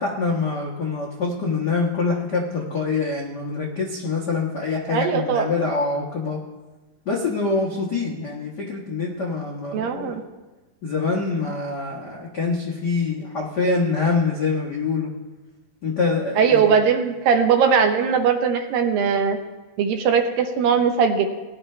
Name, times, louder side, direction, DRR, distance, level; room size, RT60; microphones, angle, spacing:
voice 1, 0.0-6.4 7.0-10.2 10.8-15.1 15.8-16.8, left 4 dB, 85° left, -4 dB, 0.9 m, -25 dB
voice 2, 4.9-5.5 9.7-10.2 16.4-19.4 19.8-21.3, right 6 dB, 75° right, 5 dB, 2.6 m, -20 dB
19.0 x 11.0 x 3.3 m, 1.2 s
omnidirectional pair, 4.2 m